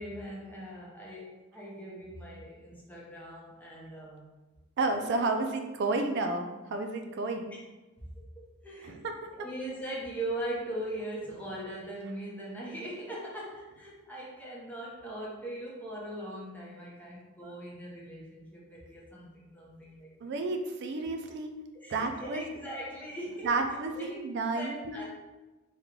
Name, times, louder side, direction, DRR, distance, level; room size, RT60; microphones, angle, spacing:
voice 1, 0.0-4.3 5.2-5.5 7.5-7.6 8.6-9.0 9.3-20.3 21.8-23.5 24.0-24.2 24.6-25.0, right 1 dB, 10° left, -5 dB, 0.7 m, -40 dB
voice 2, 4.8-7.6 8.8-9.0 17.4-17.5 20.2-21.5 21.9-22.5 23.4-25.0, right 3 dB, 55° right, 5 dB, 0.3 m, -31 dB
3.6 x 2.2 x 3.1 m, 1.1 s
head